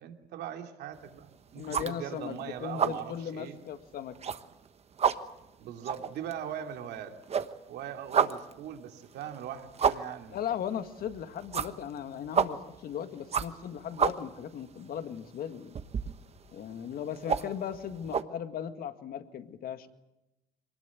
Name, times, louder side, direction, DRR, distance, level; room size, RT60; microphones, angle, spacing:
voice 1, 0.0-3.6 5.6-7.2 7.7-10.4, right 9 dB, 80° right, 5 dB, 2.7 m, -40 dB
sound 1, 1.0-1.3 1.6-2.4 2.6-3.1 3.5-3.6 4.0-7.0 7.2-18.2, right 7 dB, 40° right, 1.2 m, -31 dB
voice 2, 1.6-4.2 10.3-15.7 16.5-19.9, left 9 dB, 60° left, 9 dB, 1.9 m, -37 dB
23.5 x 20.0 x 9.3 m, 0.92 s
cardioid pair, 110°, 17 cm